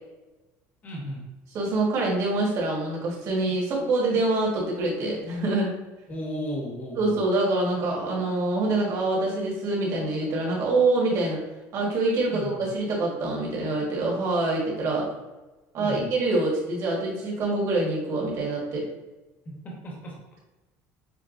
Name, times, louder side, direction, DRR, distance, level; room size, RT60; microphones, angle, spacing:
voice 1, 0.8-1.2 6.1-7.1 12.3-12.7 15.8-16.1 19.4-20.1, equal, 25° left, -3 dB, 1.1 m, -35 dB
voice 2, 1.5-5.7 7.0-11.4 11.7-15.1 15.7-18.9, right 2 dB, 50° right, -3 dB, 1.5 m, -25 dB
6.5 x 2.2 x 2.5 m, 1.1 s
cardioid pair, 135°, 7 cm